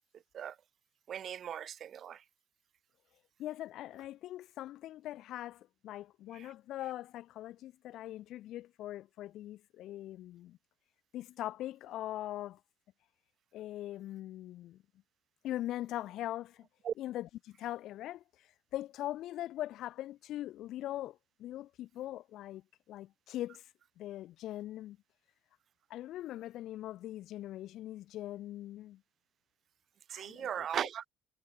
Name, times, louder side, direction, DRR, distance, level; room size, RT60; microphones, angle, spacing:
voice 1, 1.1-2.2 6.3-6.5 16.8-16.9 30.1-31.0, right 9 dB, 40° right, 0.4 m, -38 dB
voice 2, 3.4-10.6 11.1-12.6 13.5-14.8 15.4-16.6 17.0-18.2 18.7-22.6 22.9-23.6 24.0-25.0 25.9-29.0 30.1-30.6, left 14 dB, 55° left, 4.6 m, -41 dB
cardioid pair, 145°, 0 cm